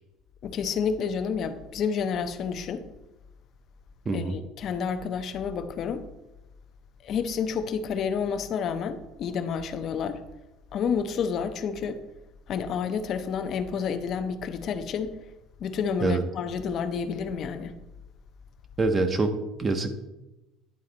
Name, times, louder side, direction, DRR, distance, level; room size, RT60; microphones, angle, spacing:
voice 1, 0.4-2.8 4.1-6.0 7.0-10.2 10.7-12.0 12.5-15.1 15.6-17.7, left 6 dB, 45° left, 0.6 m, -29 dB
voice 2, 4.1-4.4 16.0-16.2 18.8-20.0, right 3 dB, 25° right, 0.5 m, -25 dB
10.5 x 4.1 x 3.9 m
cardioid pair, 150°, 0 cm